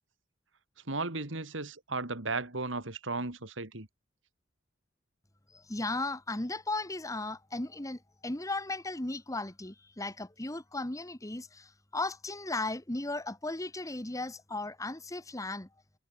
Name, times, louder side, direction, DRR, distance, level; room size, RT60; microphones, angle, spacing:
voice 1, 0.9-3.9, right 3 dB, 75° right, 2.9 m, -35 dB
voice 2, 5.5-15.7, left 2 dB, 15° left, 1.4 m, -36 dB
head